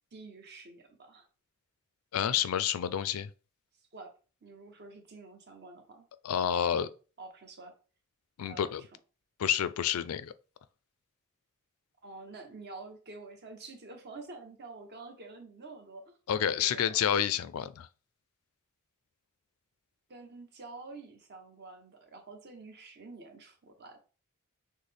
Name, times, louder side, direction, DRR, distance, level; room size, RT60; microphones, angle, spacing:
voice 1, 0.1-1.3 3.9-4.1 4.4-6.1 6.4-6.9 7.2-7.7 8.4-8.7 12.0-16.2 16.5-17.0 20.1-24.0, right 3 dB, 50° right, 0.9 m, -48 dB
voice 2, 2.1-3.3 6.2-6.9 8.4-8.8 9.4-10.3 16.3-17.9, left 9 dB, 70° left, 0.4 m, -29 dB
6.3 x 2.1 x 3.4 m
head